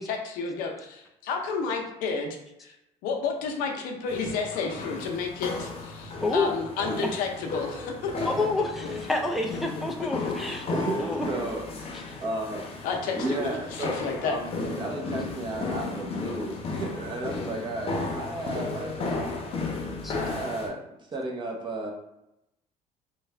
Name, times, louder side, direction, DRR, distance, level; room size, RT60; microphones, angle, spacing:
voice 1, 0.0-2.3 2.6-2.7 3.0-7.9 10.2-10.3 12.8-13.5 13.8-14.3, left 5 dB, 90° left, 2 dB, 0.6 m, -31 dB
sound 1, 4.1-20.7, left 3 dB, 45° left, 0.8 m, -34 dB
voice 2, 6.2-6.5 8.2-10.7 11.0-11.3 20.0-20.2, left 2 dB, ahead, 1 dB, 0.3 m, -28 dB
voice 3, 10.7-11.7 12.2-12.7 13.1-19.3 20.1-21.9, right 2 dB, 35° right, 0 dB, 0.8 m, -33 dB
3.2 x 2.3 x 3.3 m, 0.87 s
cardioid pair, 115°, 14 cm